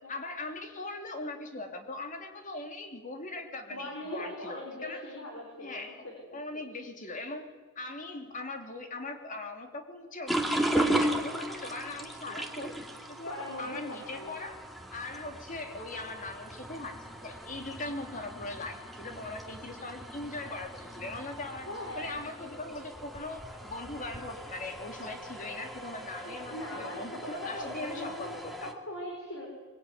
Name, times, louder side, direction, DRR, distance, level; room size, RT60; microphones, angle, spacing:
voice 1, 0.1-5.1 5.6-6.0 6.3-7.5 7.7-12.7 13.1-14.6 14.9-21.7 21.9-28.7, left 2 dB, 40° left, 5 dB, 3.2 m, -40 dB
voice 2, 3.7-6.1 6.5-6.7 12.2-12.3 13.2-14.4 21.6-22.0 26.2-28.3 28.6-29.5, left 1 dB, 75° left, 1 dB, 5.1 m, -40 dB
sound 1, 10.3-28.7, right 1 dB, ahead, 2.4 m, -37 dB
24.0 x 21.5 x 9.6 m, 1.4 s
head